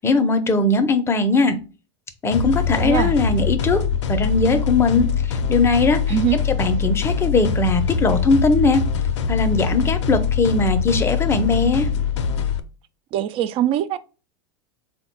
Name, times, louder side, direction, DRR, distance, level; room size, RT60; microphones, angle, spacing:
voice 1, 0.0-1.6 2.2-3.8 4.1-6.2 6.5-8.8 9.3-11.9, left 3 dB, 15° left, 0.5 m, -20 dB
sound 1, 2.3-12.6, left 6 dB, 70° left, 0.5 m, -23 dB
voice 2, 2.7-3.1 6.1-6.4 13.1-14.0, right 11 dB, 35° right, 0.4 m, -22 dB
3.6 x 2.2 x 4.4 m
hypercardioid pair, 100°, 16 cm